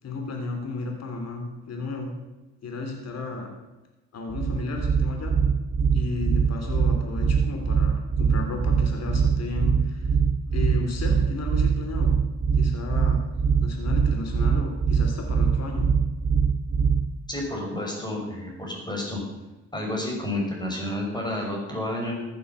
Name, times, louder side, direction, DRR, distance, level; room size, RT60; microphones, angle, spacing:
voice 1, 0.0-2.1 2.6-3.5 4.1-5.6 5.9-10.1 10.5-12.1 12.6-13.2 13.6-15.9, left 3 dB, 60° left, 3 dB, 3.2 m, -33 dB
sound 1, 4.3-17.2, right 6 dB, 35° right, 1.0 m, -22 dB
voice 2, 17.3-19.2 19.7-22.2, left 1 dB, 15° left, 0 dB, 6.0 m, -30 dB
15.0 x 9.2 x 7.0 m, 1.1 s
cardioid pair, 90°, 30 cm